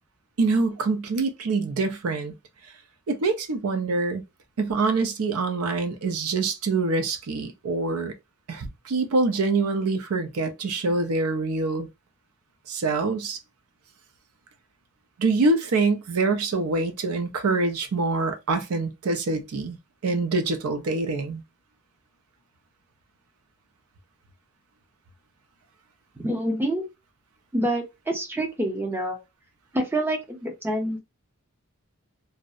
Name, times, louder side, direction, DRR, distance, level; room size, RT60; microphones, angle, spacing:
voice 1, 0.4-2.3 3.1-4.2 4.6-8.1 8.5-11.9 12.7-13.4 15.2-19.8 20.0-21.4, right 3 dB, 90° right, 0.5 m, -25 dB
voice 2, 26.2-26.8 27.5-29.2 29.7-31.0, right 1 dB, 10° right, 0.6 m, -27 dB
2.6 x 2.0 x 2.3 m
head